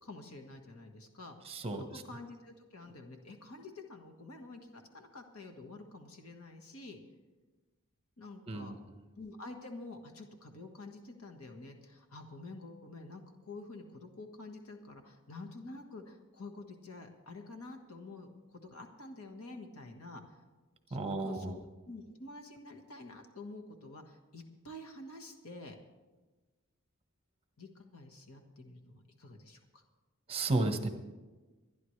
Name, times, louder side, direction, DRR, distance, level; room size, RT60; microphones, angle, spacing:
voice 1, 0.0-7.0 8.2-8.8 9.1-20.3 20.9-25.8 27.6-29.8, left 2 dB, 75° left, 4 dB, 1.5 m, -48 dB
voice 2, 1.4-1.8 8.5-8.8 20.9-21.5 30.3-30.9, right 2 dB, 25° right, 7 dB, 1.2 m, -33 dB
25.5 x 10.5 x 3.3 m, 1.3 s
head